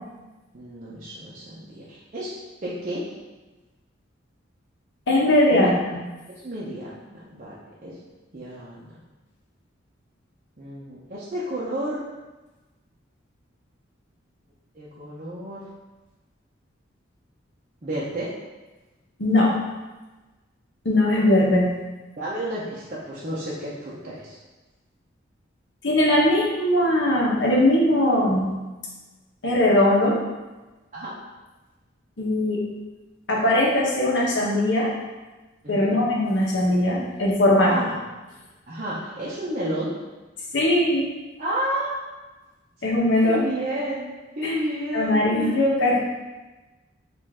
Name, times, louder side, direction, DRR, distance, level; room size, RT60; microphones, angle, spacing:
voice 1, 0.5-2.3 2.6-3.1 5.5-5.8 6.3-8.0 8.3-9.0 10.6-12.0 14.8-15.6 17.8-18.3 22.2-24.4 30.9-31.1 35.6-36.0 37.6-37.9 38.7-40.0 41.4-42.0 43.2-46.0, right 1 dB, 40° right, -8 dB, 0.7 m, -31 dB
voice 2, 5.1-5.7 19.2-19.5 20.8-21.7 25.8-28.5 29.4-30.2 32.2-32.6 33.3-34.9 35.7-37.7 40.5-41.1 42.8-43.4 44.4-44.5 44.9-46.0, left 1 dB, 65° left, -4 dB, 1.0 m, -20 dB
5.2 x 2.5 x 3.6 m, 1.2 s
head